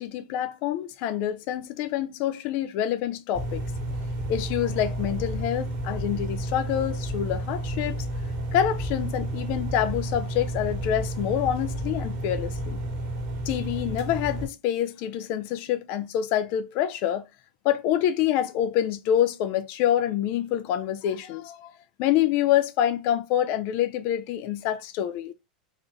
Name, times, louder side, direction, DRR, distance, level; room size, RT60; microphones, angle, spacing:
voice 1, 0.0-3.6 4.3-8.1 8.5-12.8 13.5-17.2 17.6-21.7 22.0-25.3, left 11 dB, 55° left, 0.6 m, -26 dB
sound 1, 3.3-14.5, right 1 dB, 55° right, 1.5 m, -31 dB
4.3 x 2.6 x 3.2 m
hypercardioid pair, 90°, 5 cm